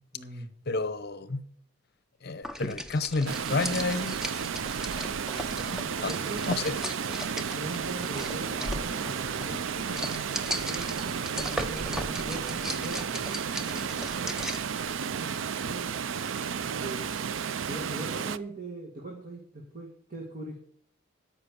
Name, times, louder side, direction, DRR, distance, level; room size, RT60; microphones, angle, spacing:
voice 1, 0.1-0.5 5.5-6.5 7.2-10.1 10.7-14.3 15.0-16.0 16.6-17.1 17.6-20.6, right 2 dB, 45° right, -1 dB, 2.0 m, -41 dB
voice 2, 0.7-1.4 2.2-4.2 4.9-5.0 5.3-6.1 6.5-6.8, left 3 dB, 55° left, 14 dB, 0.9 m, -31 dB
sound 1, 2.4-14.7, equal, 5° right, 0.8 m, -38 dB
Water, 3.3-18.4, right 7 dB, 75° right, 0.5 m, -33 dB
13.0 x 5.8 x 6.9 m, 0.65 s
head